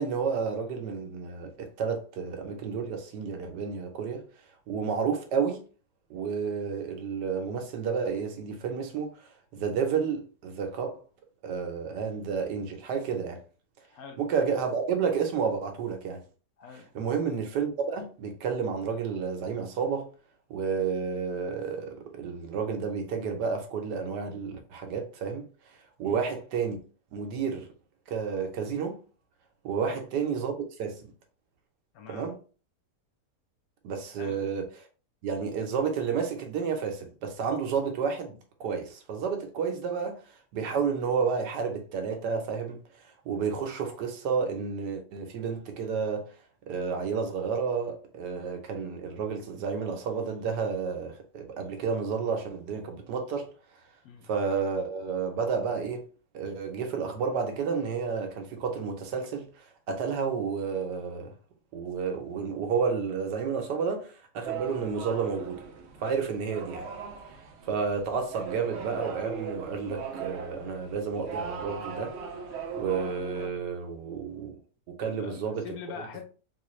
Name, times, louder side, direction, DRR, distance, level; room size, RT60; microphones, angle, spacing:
voice 1, 0.0-4.2 4.7-5.6 6.1-10.9 11.4-13.4 14.2-16.2 16.9-20.1 20.5-25.5 26.0-26.8 27.1-27.7 28.1-29.0 29.6-30.5 30.8-31.1 32.1-32.4 33.8-34.7 35.2-40.2 40.5-46.3 46.7-53.5 54.3-56.0 56.3-61.3 61.7-65.6 66.0-66.9 67.6-72.2 72.8-74.6 74.9-75.7, right 6 dB, 85° right, 1.4 m, -31 dB
voice 2, 13.9-14.2 16.6-16.9 26.0-26.3 29.8-30.0 31.9-32.3 34.2-34.4 54.0-54.3 75.0-76.3, left 6 dB, 70° left, 1.0 m, -44 dB
sound 1, 64.4-73.5, right 6 dB, 65° right, 0.6 m, -39 dB
4.1 x 2.4 x 3.0 m
omnidirectional pair, 1.8 m